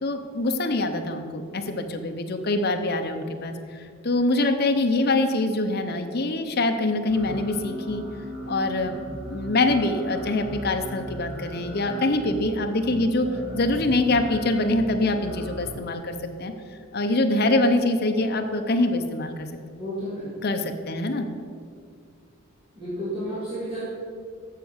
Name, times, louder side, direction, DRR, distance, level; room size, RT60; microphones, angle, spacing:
voice 1, 0.0-8.0 8.5-9.0 9.3-13.3 13.5-16.5 16.9-19.5 20.4-21.3, left 2 dB, 50° left, 5 dB, 0.7 m, -24 dB
sound 1, 7.1-15.7, equal, 65° right, 2.7 m, -37 dB
voice 2, 19.8-20.4 22.7-23.8, equal, 25° right, -11 dB, 2.5 m, -32 dB
7.5 x 6.9 x 6.4 m, 2.2 s
head